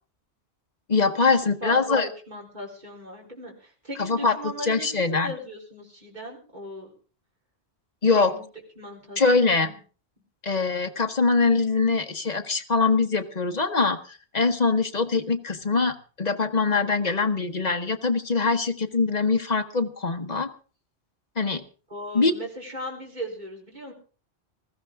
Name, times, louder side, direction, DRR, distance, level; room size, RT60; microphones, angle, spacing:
voice 1, 0.9-2.1 4.0-5.3 8.0-8.3 9.2-9.7 10.4-20.5 21.4-21.6 22.1-22.3, left 4 dB, 40° left, 6 dB, 1.3 m, -23 dB
voice 2, 1.6-6.9 8.1-8.4 8.8-9.8 21.9-23.9, right 1 dB, 40° right, -1 dB, 4.2 m, -38 dB
20.0 x 14.5 x 3.6 m, 0.37 s
omnidirectional pair, 1.1 m